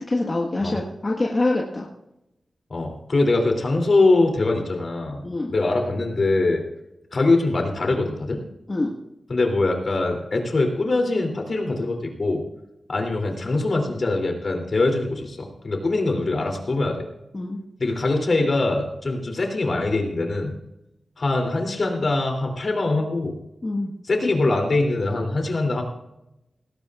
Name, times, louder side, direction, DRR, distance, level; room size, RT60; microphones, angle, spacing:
voice 1, 0.0-1.9 5.2-5.5 8.7-8.9 17.3-17.6 23.6-23.9, left 2 dB, 35° left, -1 dB, 1.6 m, -25 dB
voice 2, 2.7-5.2 5.5-6.6 7.1-8.4 9.3-12.4 12.9-17.1 17.8-20.6 21.2-23.4 24.0-25.8, left 2 dB, 50° left, 2 dB, 3.1 m, -23 dB
18.5 x 17.0 x 2.5 m, 0.88 s
wide cardioid pair, 95°, 0 cm